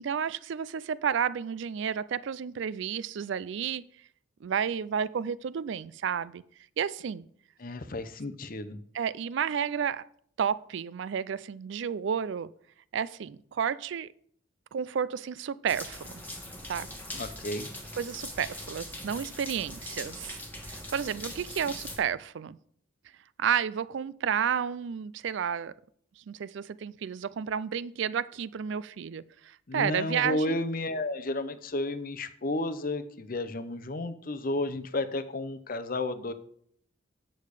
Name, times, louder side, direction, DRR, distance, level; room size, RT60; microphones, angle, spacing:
voice 1, 0.0-3.8 4.4-6.4 6.8-7.3 8.9-10.1 10.4-12.5 12.9-14.1 14.7-16.0 16.7-16.9 18.0-20.4 20.6-22.6 23.4-25.7 26.3-30.6, right 7 dB, 60° right, 0.3 m, -31 dB
voice 2, 7.6-8.8 17.1-17.7 29.7-36.3, left 2 dB, 45° left, 0.6 m, -32 dB
sound 1, 15.7-22.0, left 1 dB, 10° left, 1.4 m, -41 dB
8.6 x 6.5 x 4.9 m
head